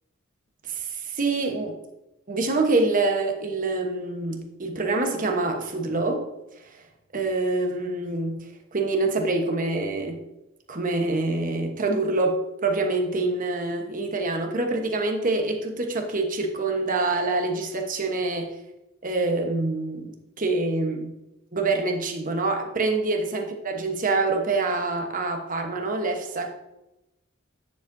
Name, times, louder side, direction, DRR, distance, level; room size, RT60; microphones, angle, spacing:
voice 1, 0.7-1.7 2.3-6.2 7.1-8.4 8.7-10.2 10.7-18.5 19.0-20.1 20.4-21.1 21.5-26.5, right 3 dB, 40° right, 3 dB, 1.1 m, -26 dB
10.0 x 7.1 x 2.7 m, 0.94 s
head